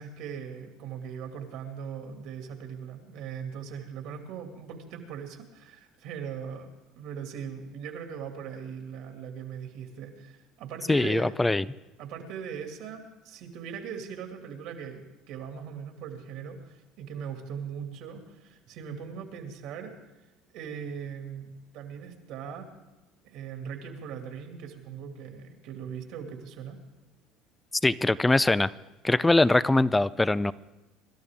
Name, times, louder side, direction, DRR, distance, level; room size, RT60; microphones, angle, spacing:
voice 1, 0.0-6.7 7.0-11.4 12.0-19.9 20.5-22.7 23.2-26.8, right 7 dB, 70° right, 4 dB, 2.4 m, -40 dB
voice 2, 10.9-11.6 27.8-28.7 29.0-30.5, left 2 dB, 15° left, 18 dB, 0.5 m, -22 dB
25.5 x 12.5 x 3.6 m, 1.0 s
supercardioid pair, 85°, 0 cm